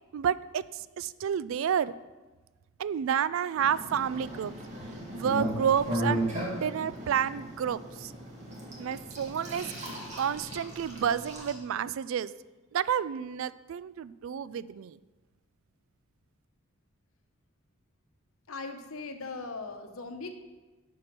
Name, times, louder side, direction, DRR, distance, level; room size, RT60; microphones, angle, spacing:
voice 1, 0.1-1.9 2.8-4.5 5.1-6.2 6.5-8.1 8.8-9.7 10.2-12.3 12.7-15.0, right 8 dB, 70° right, 17 dB, 0.3 m, -30 dB
sound 1, 3.6-11.5, equal, 35° right, 1.8 m, -36 dB
voice 2, 18.5-20.3, left 3 dB, 80° left, 6 dB, 1.0 m, -39 dB
10.0 x 4.8 x 6.0 m, 1.2 s
head